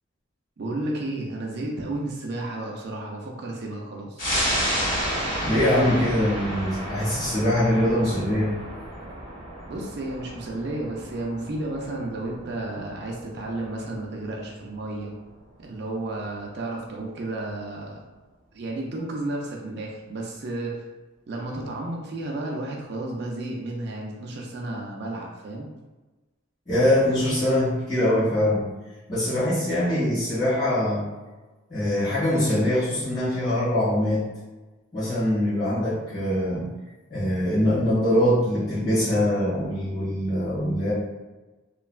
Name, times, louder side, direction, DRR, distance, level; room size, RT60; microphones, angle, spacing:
voice 1, 0.6-4.3 9.7-15.1 15.6-18.0 18.5-20.8 21.3-25.7, right 2 dB, 55° right, -1 dB, 0.4 m, -32 dB
sound 1, 4.2-15.2 15.5-15.6, equal, 85° left, 1.4 m, -31 dB
voice 2, 5.4-8.5 26.7-28.7 29.1-31.0 31.7-34.2 34.9-36.6 37.1-40.9, left 1 dB, 40° left, -13 dB, 1.4 m, -23 dB
3.1 x 2.2 x 2.4 m, 1.2 s
head